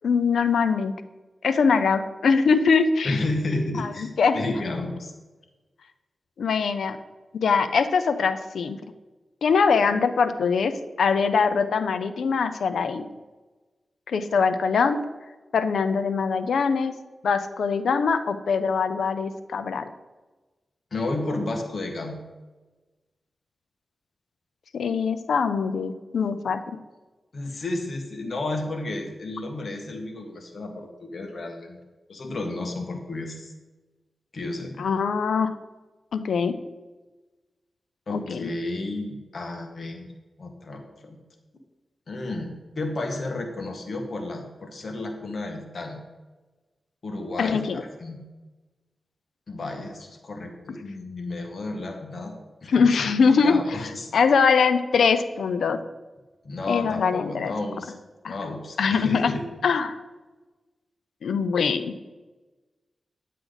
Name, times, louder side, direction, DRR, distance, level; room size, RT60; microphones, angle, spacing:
voice 1, 0.0-0.9 1.4-3.2 3.8-4.4 6.4-7.0 7.3-8.8 9.4-10.7 11.0-13.1 14.1-15.0 15.5-16.9 17.2-19.9 24.7-26.8 34.8-35.5 36.1-36.6 38.1-38.5 47.4-47.8 52.7-55.8 56.7-57.5 58.2-58.3 58.8-59.3 59.6-60.0 61.2-61.9, left 5 dB, 90° left, 11 dB, 0.6 m, -22 dB
voice 2, 3.0-4.1 4.3-5.1 20.9-22.2 27.3-31.8 32.1-33.5 34.3-34.9 38.1-40.1 40.4-41.2 42.1-46.0 47.0-48.2 49.5-52.3 52.6-54.1 56.4-57.9 58.3-59.4, left 2 dB, 60° left, 3 dB, 1.7 m, -32 dB
10.0 x 7.5 x 4.0 m, 1.2 s
cardioid pair, 60°, 0 cm